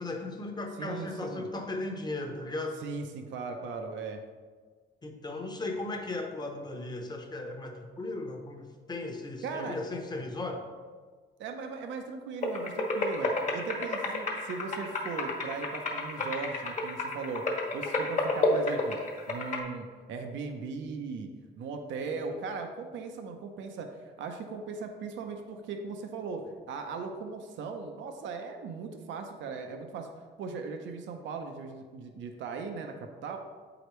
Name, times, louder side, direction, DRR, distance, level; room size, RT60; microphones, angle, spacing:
voice 1, 0.0-2.8 5.0-10.7 22.3-22.4, left 2 dB, 20° left, 3 dB, 0.9 m, -36 dB
voice 2, 0.8-1.5 2.8-4.2 9.4-9.8 11.4-19.0 19.3-21.3 21.6-30.1 30.4-33.4, right 4 dB, 80° right, 5 dB, 0.7 m, -38 dB
sound 1, 12.4-19.6, left 2 dB, 40° left, 1.3 m, -31 dB
7.7 x 4.9 x 3.1 m, 1.5 s
cardioid pair, 115°, 19 cm